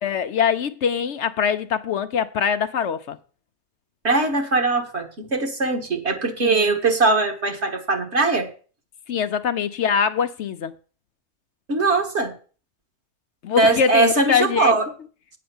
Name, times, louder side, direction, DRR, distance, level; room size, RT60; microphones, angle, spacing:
voice 1, 0.0-3.2 6.4-6.8 9.1-10.7 13.4-14.7, left 7 dB, 65° left, 0.8 m, -23 dB
voice 2, 4.0-8.5 11.7-12.3 13.6-14.9, right 3 dB, 50° right, 1.9 m, -21 dB
8.6 x 6.7 x 7.0 m
omnidirectional pair, 1.5 m